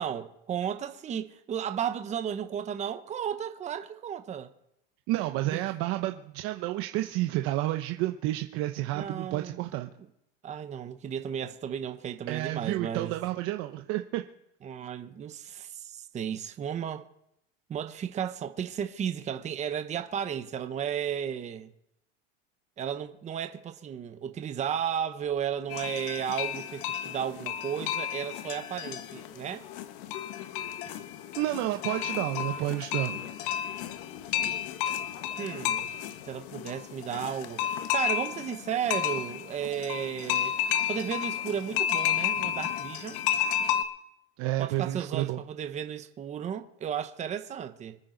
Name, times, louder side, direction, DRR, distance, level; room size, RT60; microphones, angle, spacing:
voice 1, 0.0-4.5 5.5-5.6 8.9-9.6 10.4-13.2 14.6-17.1 17.7-21.7 22.8-29.7 35.4-35.9 36.2-40.5 40.9-43.2 44.6-48.0, right 8 dB, 20° right, 1.0 m, -34 dB
voice 2, 5.1-9.9 12.3-14.2 31.4-33.3 44.4-45.4, right 16 dB, 45° right, 1.0 m, -30 dB
sound 1, 25.7-43.8, left 10 dB, 60° left, 1.4 m, -32 dB
26.5 x 9.4 x 4.0 m
supercardioid pair, 135°, 30 cm